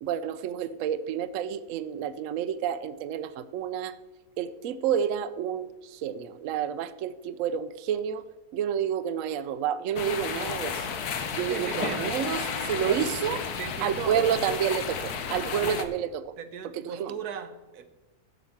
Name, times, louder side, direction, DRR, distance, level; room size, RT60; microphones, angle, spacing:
voice 1, 0.0-3.9 4.4-8.2 8.5-10.9 11.4-13.4 13.8-16.1 16.7-17.1, right 9 dB, 70° right, 13 dB, 0.9 m, -29 dB
sound 1, 10.0-15.8, left 6 dB, 90° left, 1.4 m, -32 dB
voice 2, 11.5-12.2 12.8-13.0 13.6-14.4 15.4-15.8 16.4-17.9, right 7 dB, 90° right, 9 dB, 1.4 m, -37 dB
11.5 x 6.0 x 7.1 m, 1.1 s
omnidirectional pair, 1.6 m